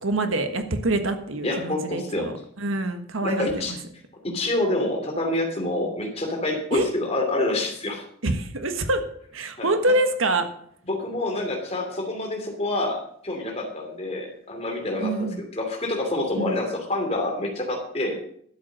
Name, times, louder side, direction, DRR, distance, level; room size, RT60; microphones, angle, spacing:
voice 1, 0.0-3.8 6.7-6.9 8.2-9.0 9.3-10.5 15.0-15.4 16.3-16.6, right 2 dB, 80° right, 7 dB, 1.4 m, -25 dB
voice 2, 1.4-2.3 3.2-3.7 4.2-8.0 9.6-9.7 10.9-18.2, left 2 dB, 30° left, 2 dB, 2.8 m, -27 dB
12.0 x 8.0 x 6.2 m, 0.65 s
head